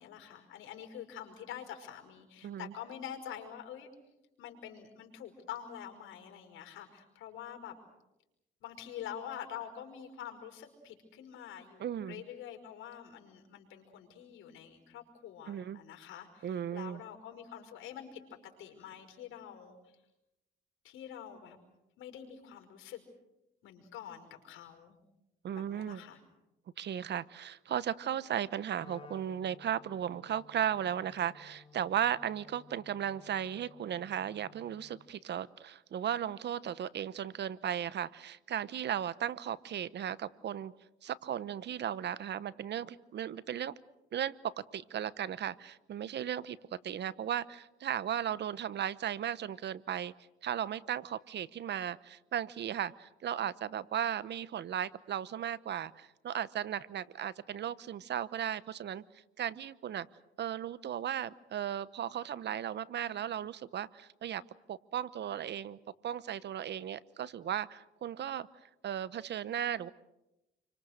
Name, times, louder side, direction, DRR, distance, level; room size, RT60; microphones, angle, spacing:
voice 1, 0.0-3.9 4.4-7.8 8.6-19.9 20.8-21.6 22.0-23.0 23.6-25.0 25.5-26.2, left 9 dB, 85° left, 5 dB, 5.4 m, -46 dB
voice 2, 2.4-2.7 11.8-12.2 15.5-15.8 16.4-17.0 25.4-26.0 26.8-40.7 41.0-43.7 44.1-50.1 50.4-59.0 59.4-60.1 60.4-64.4 64.7-65.8 66.0-68.5 68.8-69.9, right 9 dB, 60° right, 17 dB, 1.0 m, -36 dB
Wind instrument woodwind instrument, 28.8-35.1, left 4 dB, 25° left, 3.4 m, -57 dB
29.0 x 24.5 x 6.6 m, 0.92 s
cardioid pair, 90°, 20 cm